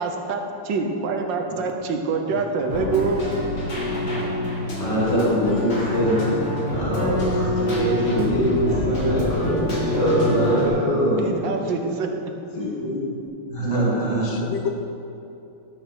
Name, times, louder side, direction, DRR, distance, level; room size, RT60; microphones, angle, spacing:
voice 1, 0.0-0.4 0.7-3.2 11.2-12.3, right 4 dB, 65° right, 3 dB, 1.5 m, -25 dB
Keyboard (musical), 2.7-10.7, left 1 dB, 60° left, 2.7 m, -26 dB
voice 2, 4.8-6.2 6.7-11.2 12.5-13.1 13.5-14.3, equal, 30° left, -7 dB, 3.0 m, -23 dB
Bass guitar, 7.0-13.3, left 1 dB, 5° left, 1.0 m, -40 dB
voice 3, 13.7-14.7, left 8 dB, 75° left, 4 dB, 1.1 m, -32 dB
12.5 x 5.3 x 6.2 m, 2.8 s
omnidirectional pair, 2.3 m